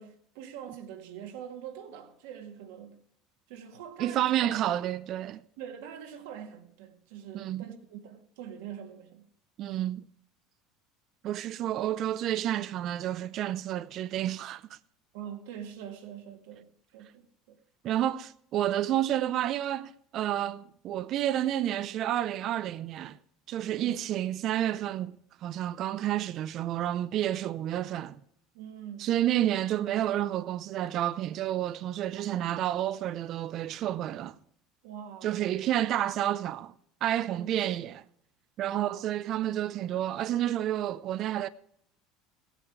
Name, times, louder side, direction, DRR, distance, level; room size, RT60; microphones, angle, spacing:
voice 1, 0.0-3.0 3.5-4.8 5.6-9.3 15.1-17.6 23.6-24.0 28.5-29.1 32.1-32.6 34.8-35.6 37.2-37.7 38.7-39.1, right 9 dB, 80° right, 2.0 m, -44 dB
voice 2, 4.0-5.4 7.3-7.7 9.6-10.0 11.2-14.6 17.8-23.2 23.5-25.2 25.4-28.2 29.0-34.4 35.2-36.7 37.0-38.0 38.6-41.5, right 12 dB, 45° right, 0.5 m, -30 dB
16.5 x 8.9 x 4.8 m
supercardioid pair, 130°, 0 cm